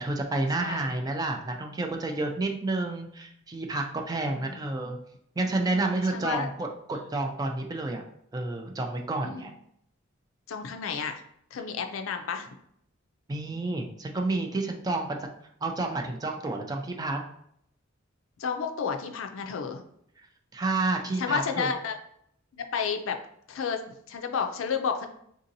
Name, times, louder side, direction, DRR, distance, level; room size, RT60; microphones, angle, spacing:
voice 1, 0.0-5.0 5.4-8.0 8.3-9.5 13.3-15.2 15.6-17.2 20.5-21.7, right 2 dB, 20° right, 3 dB, 0.3 m, -30 dB
voice 2, 4.3-4.6 6.1-6.5 7.0-7.1 9.2-9.5 10.5-11.2 11.5-12.5 18.4-19.8 21.2-21.9 22.5-23.2 23.5-25.1, left 6 dB, 75° left, 6 dB, 0.4 m, -31 dB
3.7 x 2.7 x 2.6 m, 0.70 s
head